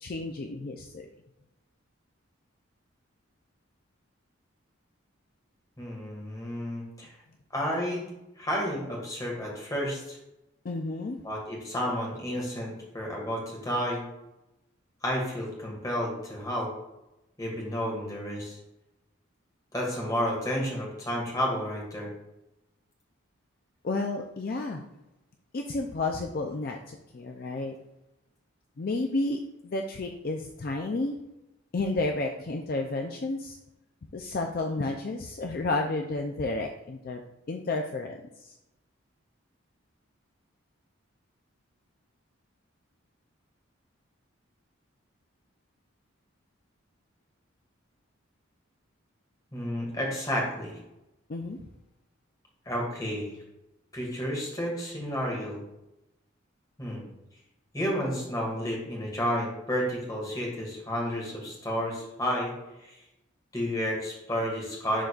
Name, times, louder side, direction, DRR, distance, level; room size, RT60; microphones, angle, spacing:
voice 1, 0.0-1.1 10.6-11.2 23.8-24.8 25.5-27.8 28.8-31.2 31.7-33.6 34.1-37.2 37.5-38.5 51.3-51.6, left 2 dB, 45° left, 3 dB, 0.4 m, -31 dB
voice 2, 5.8-7.1 7.5-8.0 8.4-10.2 11.2-14.0 15.0-16.7 17.4-18.6 19.7-22.1 49.5-50.8 52.7-53.4 53.9-55.6 56.8-57.1 57.7-62.5 62.8-63.0 63.5-65.0, equal, 15° left, -2 dB, 1.8 m, -31 dB
11.0 x 3.9 x 2.4 m, 0.91 s
head